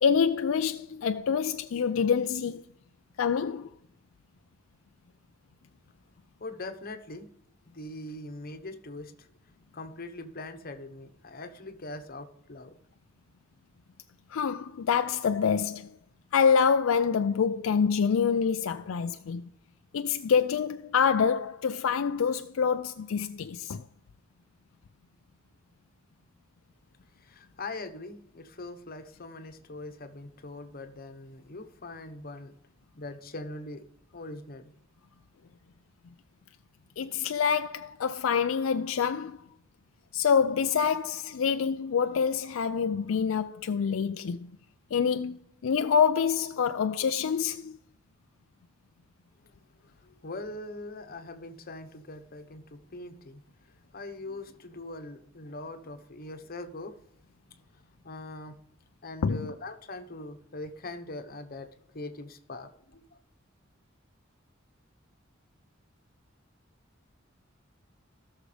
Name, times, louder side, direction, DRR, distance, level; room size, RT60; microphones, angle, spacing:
voice 1, 0.0-2.6 3.2-3.7 14.3-16.0 16.3-19.5 19.9-23.8 37.0-39.4 40.1-44.5 44.9-47.8 59.2-59.5, left 6 dB, 80° left, 0.4 m, -26 dB
voice 2, 6.4-7.3 7.7-9.3 9.7-12.7 27.2-32.5 33.0-33.9 34.1-34.7 50.0-57.0 57.7-58.6 59.0-63.0, left 2 dB, 50° left, 1.0 m, -42 dB
17.5 x 6.5 x 3.3 m
head